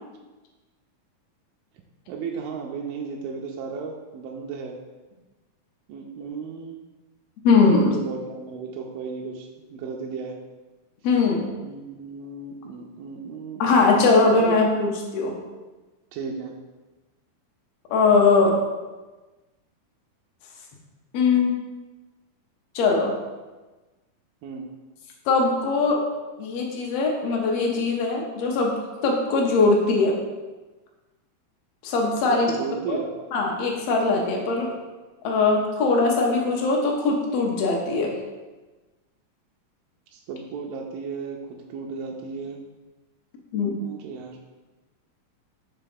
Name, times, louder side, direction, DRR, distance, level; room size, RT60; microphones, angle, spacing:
voice 1, 2.1-4.8 5.9-6.8 7.5-10.4 11.6-14.6 16.1-16.6 24.4-24.7 32.3-33.1 40.1-42.6 43.8-44.4, right 5 dB, 90° right, 0 dB, 2.3 m, -34 dB
voice 2, 7.4-7.9 11.0-11.5 13.6-15.3 17.9-18.6 21.1-21.5 22.7-23.1 25.3-26.0 26.4-28.8 29.0-30.2 31.8-32.5 32.9-33.0 33.3-34.7 35.2-38.1 43.5-43.8, left 3 dB, 75° left, 0 dB, 1.4 m, -21 dB
5.7 x 3.6 x 5.2 m, 1.2 s
omnidirectional pair, 3.9 m